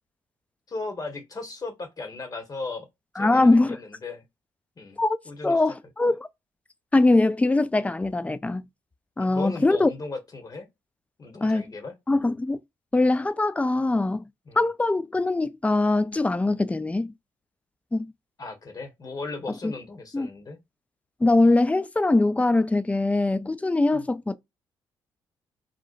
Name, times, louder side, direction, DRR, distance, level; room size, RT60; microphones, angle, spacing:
voice 1, 0.7-2.9 3.1-4.2 4.8-5.0 5.2-5.6 9.2-10.7 11.2-12.0 14.5-14.6 18.4-20.6 23.9-24.0, left 3 dB, 35° left, 0.9 m, -36 dB
voice 2, 3.2-3.8 5.0-5.2 5.4-6.3 6.9-8.7 9.2-9.9 11.4-11.7 12.1-12.6 12.9-14.2 14.6-17.1 17.9-18.1 19.6-19.7 20.1-20.3 21.2-24.4, left 2 dB, 15° left, 0.3 m, -22 dB
2.6 x 2.1 x 2.3 m
hypercardioid pair, 50°, 10 cm